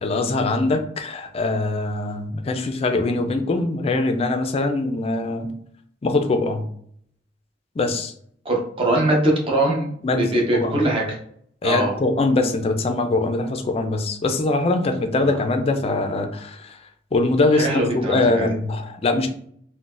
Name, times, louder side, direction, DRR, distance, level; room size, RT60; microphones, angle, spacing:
voice 1, 0.0-5.5 6.0-6.6 7.8-8.1 10.0-10.8 11.6-16.7 17.1-19.3, left 2 dB, 30° left, 6 dB, 0.4 m, -22 dB
voice 2, 8.4-9.9 10.2-11.2 11.6-12.0 15.2-15.4 17.5-18.5, right 1 dB, 30° right, -1 dB, 0.7 m, -22 dB
3.8 x 2.1 x 2.4 m, 0.65 s
head